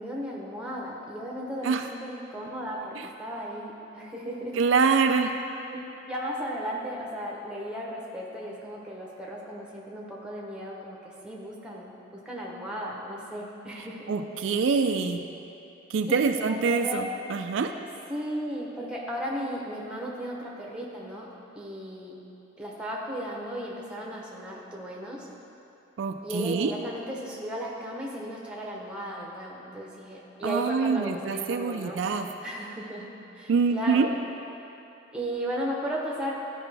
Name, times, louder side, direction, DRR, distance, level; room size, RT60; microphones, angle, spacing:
voice 1, 0.0-4.7 5.7-14.5 16.1-17.1 18.1-21.3 21.5-22.2 22.6-25.3 26.2-32.0 32.4-34.1 35.1-36.3, equal, 5° right, -3 dB, 0.9 m, -35 dB
voice 2, 4.5-5.3 14.1-15.2 15.9-17.7 26.0-26.7 30.4-32.3 33.5-34.1, right 5 dB, 70° right, 6 dB, 0.3 m, -25 dB
12.5 x 4.9 x 3.4 m, 2.9 s
head